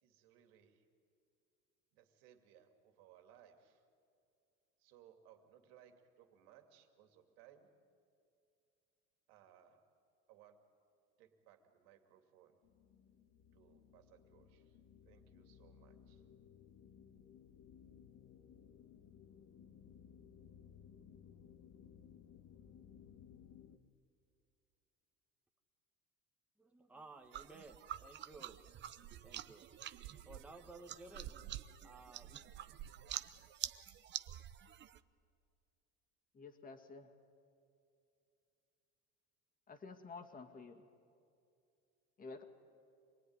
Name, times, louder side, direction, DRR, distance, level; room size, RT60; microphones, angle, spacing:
voice 1, 0.0-0.9 1.9-3.9 4.8-7.8 9.3-9.8 10.3-10.7 11.2-12.6 13.5-14.8 15.0-16.2, right 10 dB, 85° right, 5 dB, 2.7 m, -65 dB
sound 1, 12.6-23.8, left 8 dB, 60° left, 1.5 m, -60 dB
voice 2, 26.6-28.6 29.2-29.7 30.2-31.4 31.8-32.4, right 2 dB, 5° right, 1 dB, 1.5 m, -56 dB
sound 2, 27.3-35.0, right 11 dB, 40° right, 0.8 m, -48 dB
sound 3, 27.9-28.0 28.5-33.5, right 12 dB, 65° right, 0.8 m, -54 dB
voice 3, 36.3-37.1 39.7-40.9 42.2-42.4, left 4 dB, 30° left, 5 dB, 2.3 m, -51 dB
26.0 x 20.0 x 9.8 m, 2.5 s
cardioid pair, 125°, 30 cm